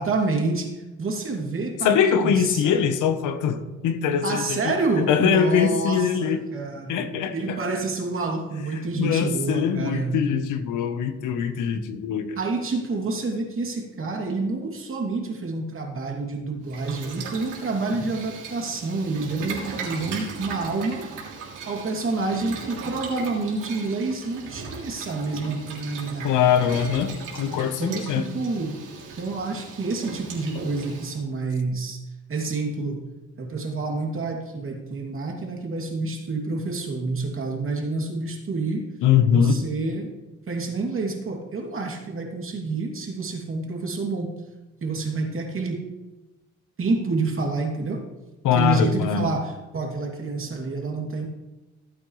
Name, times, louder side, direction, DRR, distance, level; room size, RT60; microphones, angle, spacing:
voice 1, 0.0-2.8 4.2-7.1 7.3-10.2 12.4-21.1 21.7-26.6 27.5-28.8 29.2-32.0 32.3-33.1 33.4-38.9 39.3-40.1 40.5-44.3 44.8-45.8 46.8-48.0 48.5-51.3, right 3 dB, 45° right, 0 dB, 2.9 m, -28 dB
voice 2, 1.8-6.4 6.9-7.6 9.0-12.4 26.2-28.3 39.0-39.7 48.4-49.3, left 7 dB, 90° left, 9 dB, 1.1 m, -22 dB
Boiling, 16.6-31.2, right 5 dB, 90° right, 3.3 m, -38 dB
16.0 x 8.8 x 3.3 m, 1.1 s
cardioid pair, 90°, 30 cm